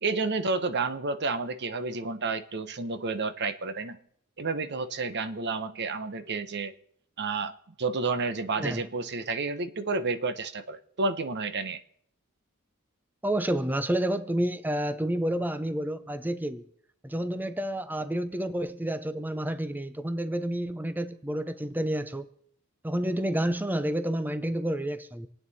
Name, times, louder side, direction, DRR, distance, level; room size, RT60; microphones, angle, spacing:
voice 1, 0.0-4.0 4.4-6.7 7.2-7.5 7.8-11.8, right 3 dB, 50° right, 0.9 m, -30 dB
voice 2, 13.2-16.6 17.0-22.3 22.8-25.3, right 1 dB, 10° right, 0.6 m, -29 dB
26.5 x 9.0 x 4.2 m
head